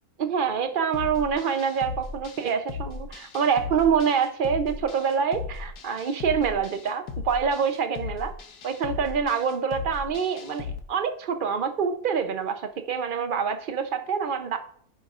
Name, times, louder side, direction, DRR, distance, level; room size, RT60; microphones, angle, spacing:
voice 1, 0.2-8.3 8.6-14.6, right 6 dB, 60° right, 8 dB, 0.5 m, -26 dB
sound 1, 0.9-10.8, left 5 dB, 80° left, 1.4 m, -37 dB
14.5 x 5.4 x 2.4 m, 0.64 s
omnidirectional pair, 1.6 m